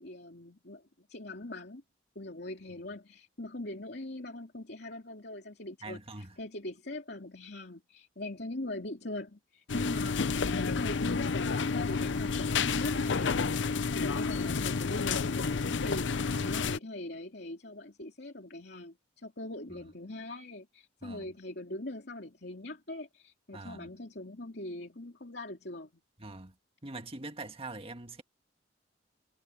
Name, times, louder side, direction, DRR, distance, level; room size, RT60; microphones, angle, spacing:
voice 1, 0.0-1.8 2.1-13.5 13.9-25.9, left 1 dB, 60° left, 3.1 m, -41 dB
voice 2, 5.8-6.3 16.3-16.7 19.7-19.8 21.0-21.3 23.5-23.9 26.2-26.5 26.8-28.2, right 2 dB, 30° right, 1.8 m, -44 dB
sound 1, 9.7-16.8, left 4 dB, 80° left, 0.7 m, -30 dB
head